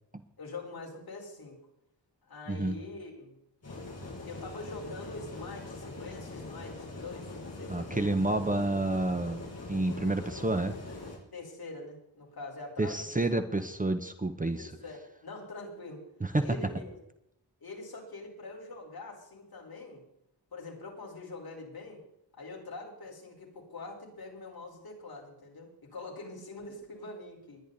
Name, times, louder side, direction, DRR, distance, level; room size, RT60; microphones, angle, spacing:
voice 1, 0.4-1.6 2.2-3.3 4.3-8.2 11.3-13.6 14.5-16.0 16.4-17.0 17.6-20.0 20.5-22.0 22.4-27.6, left 3 dB, 55° left, -1 dB, 4.7 m, -44 dB
sound 1, 3.6-11.2, left 2 dB, 35° left, 7.3 m, -42 dB
voice 2, 7.7-10.7 12.8-14.7 16.2-16.5, right 2 dB, 20° right, 8 dB, 0.8 m, -29 dB
21.0 x 10.0 x 4.1 m, 0.83 s
wide cardioid pair, 165°, 42 cm